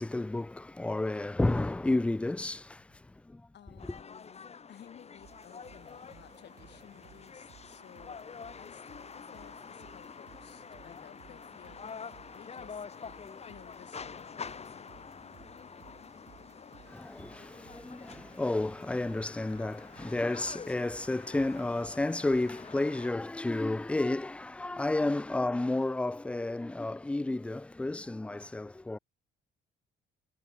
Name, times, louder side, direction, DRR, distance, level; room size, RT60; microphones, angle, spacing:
voice 1, 0.0-3.4 16.9-29.0, left 2 dB, 5° left, 0.3 m, -31 dB
voice 2, 3.5-15.1, left 10 dB, 60° left, 1.5 m, -56 dB
sound 1, 3.8-23.1, left 6 dB, 30° left, 1.0 m, -47 dB
sound 2, 5.2-22.7, right 11 dB, 60° right, 0.9 m, -59 dB
cardioid pair, 90°, 20 cm